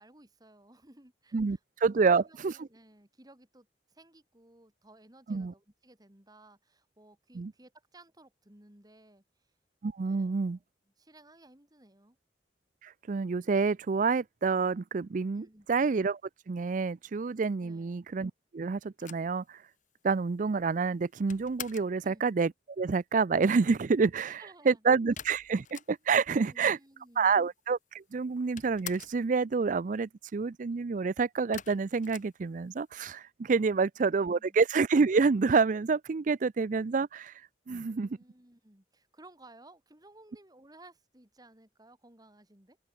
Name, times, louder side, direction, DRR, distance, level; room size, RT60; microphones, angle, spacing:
voice 1, 0.0-9.2 10.0-10.6 11.0-12.2 15.3-15.7 17.6-18.0 22.0-22.2 24.4-25.0 26.4-27.5 33.7-34.6 37.8-42.8, right 2 dB, 20° right, 2.9 m, -57 dB
voice 2, 1.3-2.5 5.3-5.5 7.3-7.5 9.8-10.6 12.8-16.2 16.5-19.6 20.0-22.5 22.8-26.8 27.2-37.3 37.7-38.1, right 4 dB, 45° right, 0.4 m, -28 dB
sound 1, 19.0-22.0 25.2-26.3 26.6-26.7 26.9-27.7 28.0-29.3 31.5-33.0, left 9 dB, 45° left, 5.2 m, -46 dB
open air
head